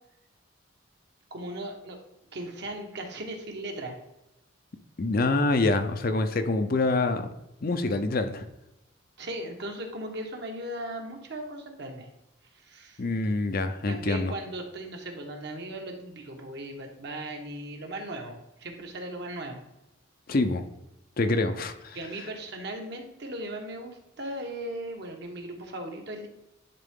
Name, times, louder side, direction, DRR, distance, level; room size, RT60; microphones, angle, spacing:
voice 1, 1.3-2.0 2.3-4.0 9.2-12.1 12.6-13.0 13.9-19.6 21.9-26.3, right 1 dB, 55° right, 3 dB, 1.2 m, -37 dB
voice 2, 5.0-7.3 7.6-8.5 13.0-14.3 20.3-20.6 21.2-22.0, left 2 dB, 45° left, 8 dB, 0.6 m, -26 dB
10.5 x 3.7 x 3.7 m, 0.91 s
head